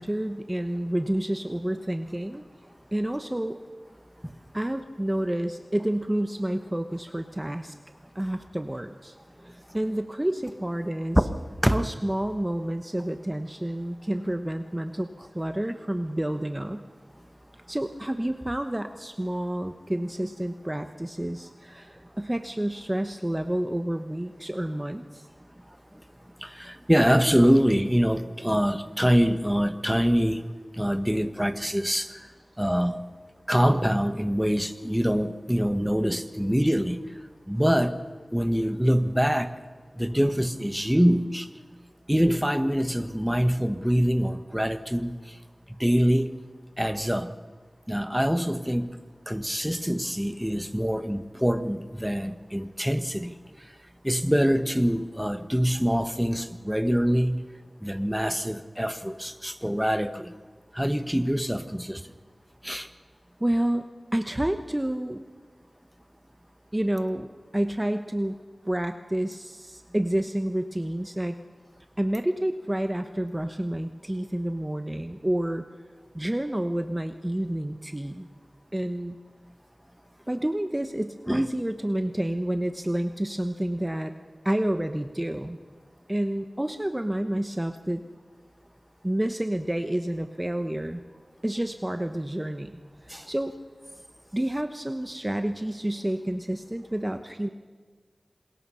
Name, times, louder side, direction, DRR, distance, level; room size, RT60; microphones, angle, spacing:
voice 1, 0.0-2.4 2.9-3.6 4.5-7.7 8.1-9.2 9.4-11.2 11.7-16.8 17.7-25.3 63.4-63.8 64.1-65.2 66.7-68.4 68.6-71.4 72.0-75.6 76.1-78.3 78.7-79.2 80.3-84.1 84.4-85.6 86.1-88.0 89.0-91.0 91.4-92.8 93.1-93.5 94.3-97.5, right 1 dB, 20° right, 7 dB, 1.1 m, -29 dB
voice 2, 26.4-30.4 30.8-32.1 32.6-33.0 33.5-37.0 37.5-37.9 38.3-39.5 40.0-41.5 42.1-45.1 45.8-46.3 46.8-47.3 47.9-48.9 49.3-53.3 54.0-57.4 57.8-60.3 60.7-62.0 62.6-62.9 81.3-81.4 93.1-93.3, equal, 5° right, 10 dB, 1.3 m, -24 dB
27.0 x 21.0 x 5.7 m, 1.5 s
wide cardioid pair, 45°, 0 cm